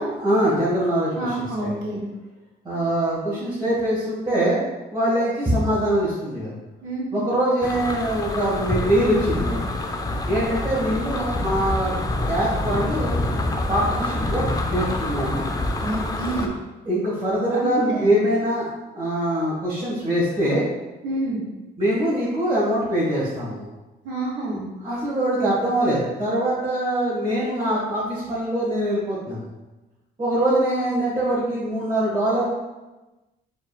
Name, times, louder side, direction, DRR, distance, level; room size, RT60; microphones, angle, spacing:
voice 1, 0.2-1.7 2.6-4.6 4.9-6.5 7.1-9.6 10.3-11.9 12.3-13.1 13.7-15.5 16.2-16.5 16.8-18.7 18.9-20.6 21.8-23.7 24.8-29.5 30.2-32.5, right 1 dB, 20° right, -9 dB, 1.4 m, -23 dB
voice 2, 1.1-2.0 6.8-7.2 15.8-16.4 17.6-18.1 21.0-21.4 24.0-24.6, right 1 dB, 75° right, -4 dB, 1.5 m, -28 dB
sound 1, 7.6-16.5, left 2 dB, 20° left, 0.5 m, -26 dB
4.6 x 3.8 x 2.3 m, 1.1 s
cardioid pair, 90°, 20 cm